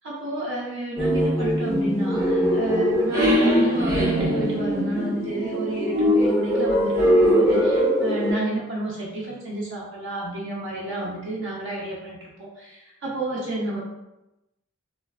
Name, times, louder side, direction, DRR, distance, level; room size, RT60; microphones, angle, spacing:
voice 1, 0.0-13.8, right 2 dB, 65° right, -6 dB, 0.6 m, -31 dB
sound 1, 1.0-8.3, equal, 15° right, 0.5 m, -21 dB
3.1 x 2.5 x 2.3 m, 0.95 s
head